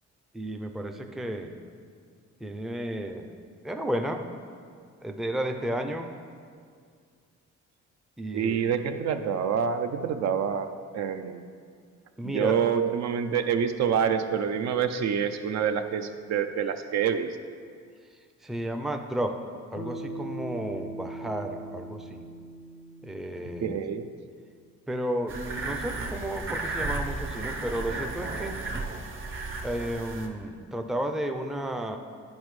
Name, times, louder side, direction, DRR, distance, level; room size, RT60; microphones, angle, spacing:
voice 1, 0.3-1.5 2.4-3.3 3.6-4.2 5.0-6.1 8.2-8.7 12.2-12.6 18.4-19.4 19.7-22.3 23.0-23.8 24.9-28.6 29.6-32.0, right 1 dB, ahead, 5 dB, 0.4 m, -32 dB
voice 2, 8.3-11.4 12.2-17.4 23.6-24.1, right 7 dB, 60° right, 8 dB, 0.5 m, -27 dB
Bass guitar, 19.8-24.2, right 1 dB, 65° left, 0.6 m, -40 dB
sound 1, 25.3-30.3, right 3 dB, 45° right, 0.9 m, -34 dB
10.5 x 5.1 x 3.1 m, 2.1 s
cardioid pair, 90°, 30 cm